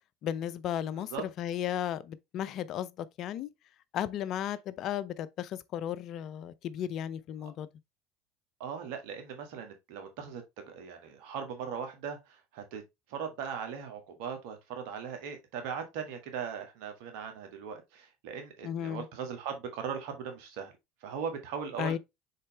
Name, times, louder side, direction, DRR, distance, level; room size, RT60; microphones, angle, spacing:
voice 1, 0.2-3.5 3.9-7.7 18.6-19.0 21.8-22.0, left 10 dB, 55° left, 0.6 m, -35 dB
voice 2, 8.6-12.8 13.1-20.7 21.0-22.0, right 7 dB, 70° right, 1.9 m, -39 dB
6.6 x 4.3 x 3.3 m
hypercardioid pair, 80°, 0 cm